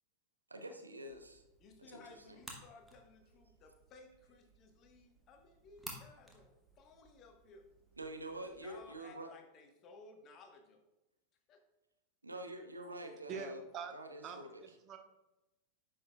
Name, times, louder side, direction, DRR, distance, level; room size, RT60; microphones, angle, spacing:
voice 1, 0.5-1.4 1.8-2.0 2.3-2.4 8.0-9.3 12.2-13.6 13.9-14.6, right 1 dB, 80° right, 6 dB, 0.8 m, -46 dB
sound 1, 1.1-9.0, right 1 dB, 5° right, 1.6 m, -56 dB
voice 2, 1.6-6.5 6.7-7.6 8.4-10.8 11.5-11.6, left 3 dB, 35° left, 4 dB, 1.2 m, -58 dB
voice 3, 13.3-13.9 14.2-15.0, right 7 dB, 30° right, 6 dB, 1.1 m, -45 dB
9.9 x 6.4 x 2.3 m, 0.97 s
figure-of-eight pair, 90°, 0 cm